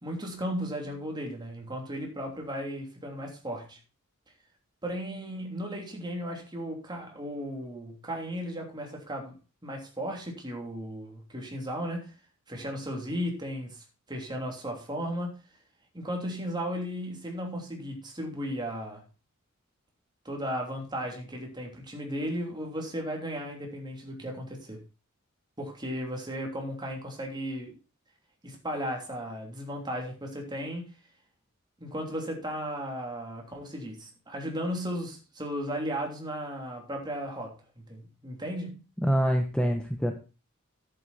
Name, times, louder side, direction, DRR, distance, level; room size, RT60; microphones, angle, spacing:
voice 1, 0.0-3.8 4.8-9.4 9.6-12.1 12.5-15.3 15.9-19.0 20.2-24.8 25.6-27.7 28.4-30.9 31.8-38.8, equal, 20° right, 1 dB, 3.2 m, -35 dB
voice 2, 39.0-40.1, equal, 5° left, 4 dB, 1.0 m, -25 dB
11.0 x 8.5 x 4.2 m, 0.32 s
head